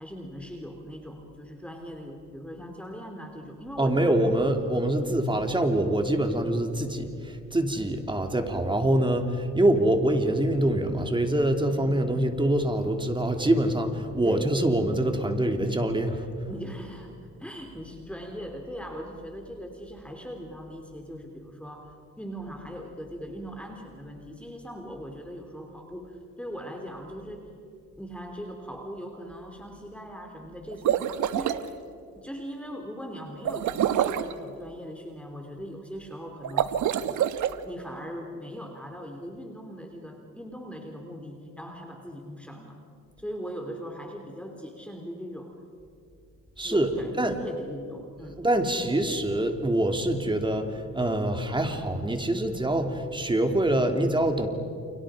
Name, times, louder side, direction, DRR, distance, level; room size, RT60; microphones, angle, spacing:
voice 1, 0.0-4.2 14.2-14.6 16.5-27.5 28.0-31.7 32.2-36.8 37.6-42.8 43.2-45.5 46.6-48.4, equal, 5° left, 2 dB, 3.2 m, -40 dB
voice 2, 3.8-16.3 46.6-47.4 48.4-54.5, right 1 dB, 15° right, 5 dB, 3.0 m, -25 dB
sound 1, 30.7-31.6 33.4-34.3 36.4-37.5, right 10 dB, 75° right, 1.2 m, -26 dB
30.0 x 29.0 x 5.0 m, 2.5 s
cardioid pair, 90°, 30 cm